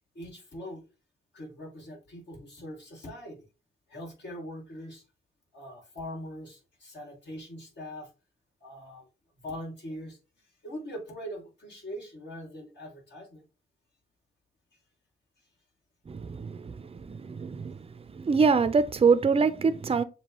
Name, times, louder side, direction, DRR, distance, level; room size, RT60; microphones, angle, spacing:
voice 1, 0.1-0.8 1.3-3.4 3.9-5.0 5.5-8.1 8.6-9.1 9.4-10.2 10.6-13.4, equal, 60° left, 2.4 m, -42 dB
voice 2, 16.1-17.9 18.1-20.0, right 5 dB, 30° right, 0.6 m, -25 dB
7.0 x 2.4 x 3.0 m
cardioid pair, 80°, 21 cm